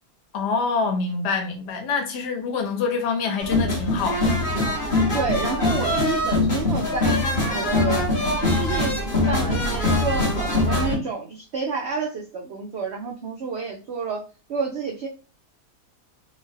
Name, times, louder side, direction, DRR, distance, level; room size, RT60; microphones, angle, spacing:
voice 1, 0.3-4.4, left 4 dB, 75° left, 1.4 m, -26 dB
sound 1, 3.4-11.0, left 2 dB, 35° left, 1.2 m, -22 dB
voice 2, 5.1-7.2 7.5-9.0 9.2-14.2 14.5-15.1, right 4 dB, 80° right, 0.6 m, -29 dB
3.7 x 2.3 x 3.1 m
omnidirectional pair, 1.8 m